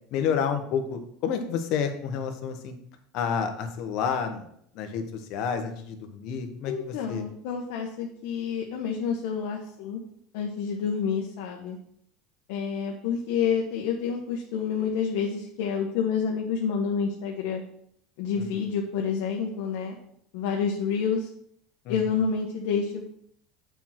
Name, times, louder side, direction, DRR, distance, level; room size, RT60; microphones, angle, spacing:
voice 1, 0.1-2.7 3.1-4.5 4.7-7.2 18.4-18.5 21.8-22.0, left 7 dB, 55° left, 6 dB, 1.2 m, -29 dB
voice 2, 6.6-10.0 10.3-11.8 12.5-17.6 18.2-20.0 20.3-21.3 21.9-23.0, left 6 dB, 75° left, 0 dB, 1.1 m, -28 dB
7.0 x 4.7 x 5.9 m, 0.69 s
supercardioid pair, 145°, 0 cm